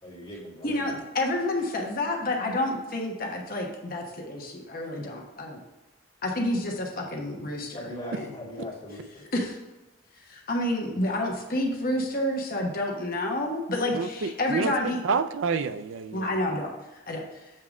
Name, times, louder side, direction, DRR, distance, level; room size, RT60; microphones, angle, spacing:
voice 1, 0.0-1.0 7.7-9.2, left 1 dB, 25° left, -7 dB, 2.5 m, -40 dB
voice 2, 0.6-5.6 6.2-8.3 9.3-9.6 10.2-15.0 16.1-17.5, left 1 dB, 45° left, 0 dB, 1.1 m, -29 dB
voice 3, 13.9-14.7 15.0-16.3, right 5 dB, 70° right, 11 dB, 0.4 m, -28 dB
7.6 x 3.7 x 4.9 m, 1.1 s
head